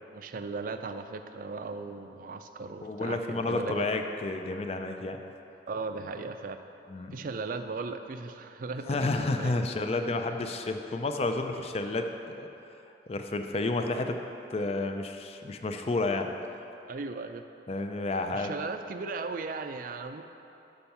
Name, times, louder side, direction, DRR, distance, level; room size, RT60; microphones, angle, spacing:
voice 1, 0.1-3.9 5.7-6.6 7.1-9.6 16.9-17.4 18.3-20.2, right 4 dB, 50° right, 8 dB, 0.4 m, -37 dB
voice 2, 2.8-5.2 6.9-7.1 8.8-12.5 13.1-14.2 14.5-16.3 17.7-18.6, left 2 dB, 35° left, 6 dB, 0.4 m, -31 dB
6.9 x 5.3 x 5.8 m, 2.9 s
head